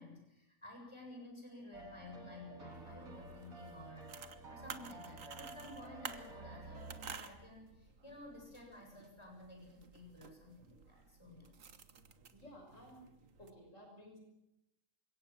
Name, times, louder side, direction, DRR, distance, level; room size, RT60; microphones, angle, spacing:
voice 1, 0.0-4.1 4.5-11.5, left 1 dB, 20° left, 0 dB, 7.4 m, -53 dB
sound 1, 1.7-7.2, right 1 dB, 85° right, 3.1 m, -52 dB
sound 2, 2.7-13.5, right 6 dB, 70° right, 1.8 m, -53 dB
voice 2, 12.3-13.1 13.4-14.2, equal, 65° left, 1 dB, 6.1 m, -55 dB
29.0 x 17.5 x 7.4 m, 0.85 s
omnidirectional pair, 1.4 m